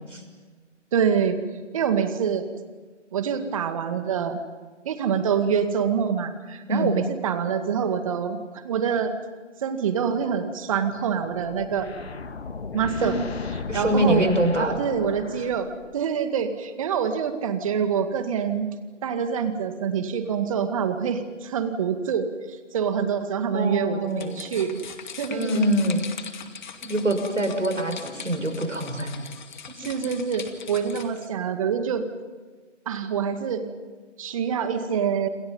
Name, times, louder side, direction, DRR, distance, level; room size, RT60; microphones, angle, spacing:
voice 1, 0.9-1.4 1.7-2.4 3.1-4.4 4.9-9.1 9.6-11.9 12.7-13.1 13.7-14.2 14.6-18.7 19.0-22.3 22.7-24.8 25.2-25.6 29.8-32.0 32.9-33.6 34.2-35.3, right 7 dB, 25° right, 8 dB, 2.1 m, -26 dB
sound 1, 10.7-16.2, left 4 dB, 55° left, 1.9 m, -36 dB
voice 2, 13.7-14.8 23.5-24.4 25.3-26.1 26.8-29.1, right 1 dB, 85° right, 5 dB, 6.2 m, -24 dB
sound 2, 24.1-31.3, left 6 dB, 40° left, 2.3 m, -41 dB
28.0 x 27.0 x 5.6 m, 1.4 s
figure-of-eight pair, 150°, 37 cm